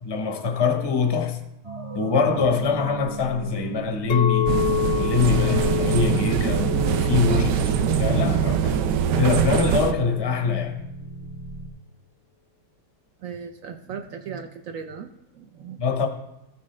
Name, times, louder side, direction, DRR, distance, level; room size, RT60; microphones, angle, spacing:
voice 1, 0.0-1.4 1.9-4.5 5.0-8.8 9.2-10.8 15.8-16.1, left 5 dB, 25° left, 0.5 m, -23 dB
sound 1, 1.6-11.7, right 4 dB, 35° right, 0.5 m, -36 dB
Chink clink, 4.1-9.3, left 11 dB, 60° left, 0.9 m, -29 dB
sound 2, 4.5-9.9, right 8 dB, 85° right, 1.2 m, -23 dB
voice 2, 13.2-15.8, right 6 dB, 65° right, 0.9 m, -37 dB
14.5 x 6.1 x 3.2 m
omnidirectional pair, 1.8 m